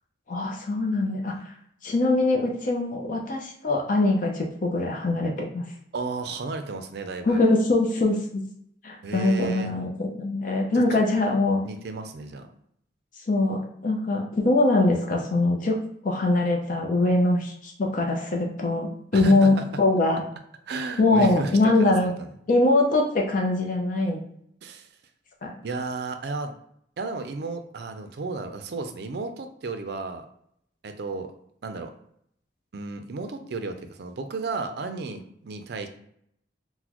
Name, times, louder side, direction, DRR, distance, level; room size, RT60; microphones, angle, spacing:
voice 1, 0.3-1.3 1.8-5.7 7.2-8.4 8.8-11.6 13.3-15.8 16.0-20.2 21.0-22.1 22.5-24.2 25.4-25.5, left 2 dB, 45° left, 1 dB, 0.5 m, -23 dB
voice 2, 5.9-7.4 9.0-9.7 10.7-11.0 11.6-12.5 19.1-19.6 20.7-22.3 24.6-24.9 25.6-26.5 27.0-30.3 30.8-31.3 31.6-31.9 32.7-35.9, right 3 dB, 60° right, 7 dB, 0.4 m, -33 dB
3.9 x 2.1 x 2.9 m, 0.71 s
head